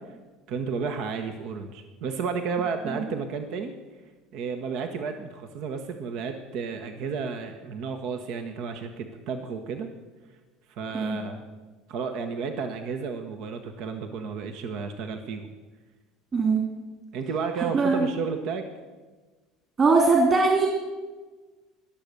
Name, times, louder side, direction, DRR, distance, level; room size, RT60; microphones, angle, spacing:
voice 1, 0.5-3.7 4.3-9.9 10.7-11.4 11.9-15.5 17.1-18.7, right 5 dB, 65° right, 6 dB, 1.1 m, -32 dB
voice 2, 16.3-16.6 17.7-18.1 19.8-20.7, right 3 dB, 35° right, 1 dB, 2.7 m, -21 dB
20.5 x 7.1 x 6.7 m, 1.3 s
hypercardioid pair, 70°, 0 cm